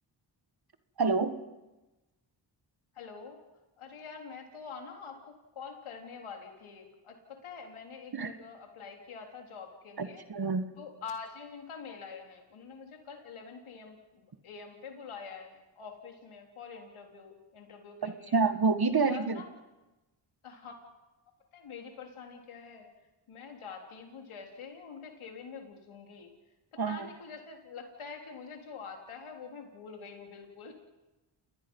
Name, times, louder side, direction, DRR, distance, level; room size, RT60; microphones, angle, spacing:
voice 1, 1.0-1.4 8.1-8.3 10.0-10.6 18.0-19.4 26.8-27.1, right 4 dB, 50° right, 9 dB, 1.8 m, -28 dB
voice 2, 3.0-3.4 3.8-10.2 10.8-18.4 18.9-19.5 20.4-20.7 21.5-22.9 23.3-26.3 26.9-30.7, left 5 dB, 80° left, 2 dB, 3.9 m, -46 dB
29.0 x 19.0 x 5.6 m, 1.1 s
cardioid pair, 55°, 49 cm